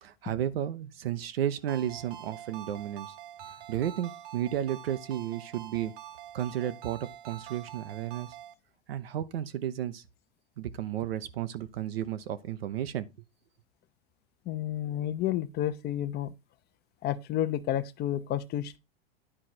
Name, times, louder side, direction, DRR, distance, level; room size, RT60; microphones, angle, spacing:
voice 1, 0.0-3.1 3.7-5.9 6.3-8.3 8.9-10.0 10.6-13.1, right 11 dB, 80° right, 1.0 m, -33 dB
Ringtone, 1.7-8.5, right 11 dB, 55° right, 1.1 m, -46 dB
voice 2, 14.5-16.3 17.0-18.8, left 12 dB, 35° left, 0.8 m, -31 dB
10.0 x 4.9 x 4.4 m
hypercardioid pair, 105°, 29 cm